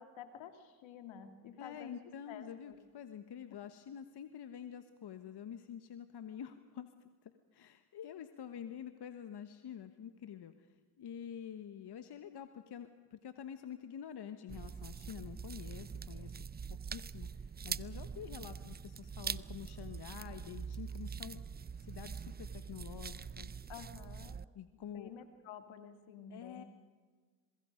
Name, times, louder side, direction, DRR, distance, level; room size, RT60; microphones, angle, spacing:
voice 1, 0.0-2.0 2.3-2.8 3.5-3.6 23.7-24.4 24.7-26.6, left 7 dB, 75° left, 7 dB, 2.4 m, -51 dB
voice 2, 1.6-10.7 11.0-16.4 16.8-21.4 21.8-23.5 24.5-25.1 26.3-26.6, left 9 dB, 55° left, 9 dB, 1.4 m, -48 dB
sound 1, 14.5-24.4, right 6 dB, 20° right, 0.5 m, -44 dB
27.5 x 22.5 x 5.2 m, 1.5 s
supercardioid pair, 60°, 47 cm